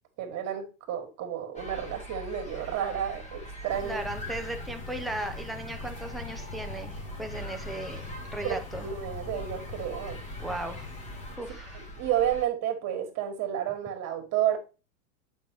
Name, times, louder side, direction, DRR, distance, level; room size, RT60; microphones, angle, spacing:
voice 1, 0.2-4.0 8.4-8.5 8.8-10.2 11.7-14.6, right 10 dB, 35° right, 1.8 m, -31 dB
sound 1, 1.5-12.4, right 1 dB, 15° left, 1.3 m, -43 dB
sound 2, 3.7-11.4, left 3 dB, 50° left, 2.7 m, -42 dB
voice 2, 3.8-8.0 8.3-8.8 10.4-10.8 11.4-11.8, right 1 dB, ahead, 0.4 m, -36 dB
7.5 x 5.6 x 2.9 m
supercardioid pair, 135°, 44 cm